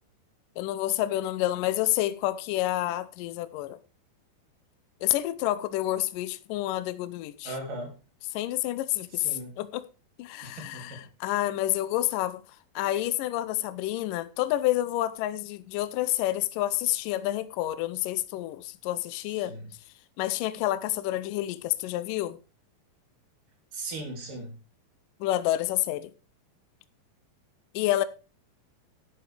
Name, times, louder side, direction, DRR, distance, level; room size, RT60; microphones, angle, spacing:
voice 1, 0.6-3.8 5.0-7.5 8.3-9.8 10.2-12.4 12.8-19.5 20.2-22.4 25.2-26.1 27.7-28.0, left 15 dB, 75° left, 2.1 m, -29 dB
voice 2, 7.4-8.0 9.1-9.5 10.4-11.0 19.4-19.7 23.7-24.5, right 2 dB, 60° right, 4.8 m, -38 dB
12.5 x 10.5 x 3.3 m
omnidirectional pair, 4.3 m